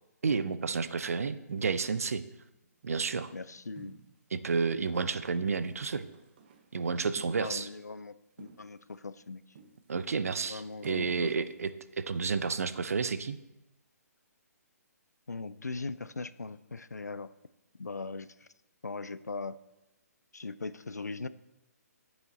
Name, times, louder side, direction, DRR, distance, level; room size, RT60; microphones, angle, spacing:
voice 1, 0.2-2.2 2.8-3.3 4.3-6.1 6.7-7.7 9.9-11.7 12.0-13.4, right 5 dB, 60° right, 13 dB, 0.6 m, -31 dB
sound 1, 1.5-2.2 2.6-3.3 3.8-4.4 4.8-6.8 7.2-7.9 8.3-9.3 9.5-10.2 10.6-13.1, right 6 dB, 35° right, 0.9 m, -57 dB
voice 2, 3.3-4.0 7.4-9.4 10.5-11.3 15.3-17.3 17.8-18.5 18.8-19.6 20.3-21.3, left 3 dB, 80° left, 16 dB, 0.5 m, -40 dB
10.0 x 7.1 x 4.1 m, 0.92 s
figure-of-eight pair, 135°, 9 cm